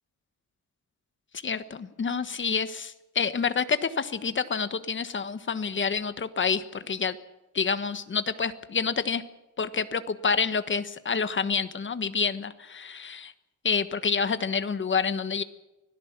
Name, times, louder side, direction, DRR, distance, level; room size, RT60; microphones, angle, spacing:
voice 1, 1.3-7.2 7.5-9.2 9.6-13.3 13.6-15.4, left 5 dB, 35° left, 11 dB, 1.3 m, -28 dB
25.0 x 17.0 x 7.4 m, 0.99 s
wide cardioid pair, 160°, 32 cm